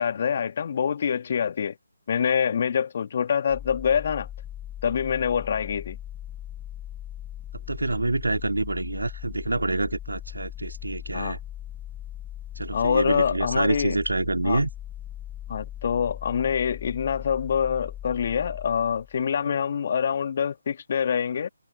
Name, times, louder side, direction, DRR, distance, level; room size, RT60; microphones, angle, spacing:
voice 1, 0.0-1.7 2.1-4.3 4.8-6.0 11.1-11.4 12.7-14.0 14.4-14.6 15.5-21.5, left 7 dB, 40° left, 1.5 m, -25 dB
sound 1, 3.5-19.3, left 11 dB, 10° left, 5.3 m, -39 dB
voice 2, 7.7-11.4 12.6-14.7 19.5-19.6, right 2 dB, 75° right, 2.4 m, -27 dB
figure-of-eight pair, 150°, 0 cm